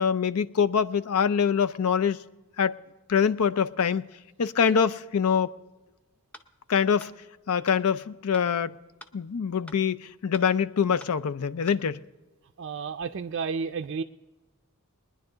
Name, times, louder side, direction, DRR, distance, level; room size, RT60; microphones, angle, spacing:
voice 1, 0.0-2.2 2.6-2.8 3.1-4.0 4.4-5.5 6.7-7.1 7.5-8.7 9.1-12.0, left 7 dB, 80° left, 0.5 m, -24 dB
sound 1, 6.3-6.5 7.0-7.1 7.7-7.8 8.3-8.5 9.0-9.1 9.7-9.8 10.3-10.5 11.0-11.1 11.7-11.8, left 1 dB, 5° left, 0.6 m, -46 dB
voice 2, 12.6-14.0, right 5 dB, 55° right, 0.4 m, -31 dB
21.5 x 10.5 x 3.9 m
head